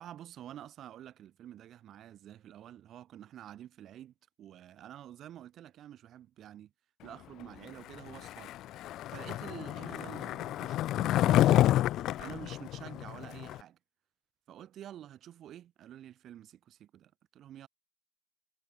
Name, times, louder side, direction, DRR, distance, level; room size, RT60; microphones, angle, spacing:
voice 1, 0.0-6.7 7.0-8.5 9.1-11.7 12.2-13.8 14.5-17.7, right 11 dB, 75° right, 2.4 m, -49 dB
Skateboard, 8.1-13.6, left 14 dB, 85° left, 0.4 m, -29 dB
cardioid pair, 90°, 0 cm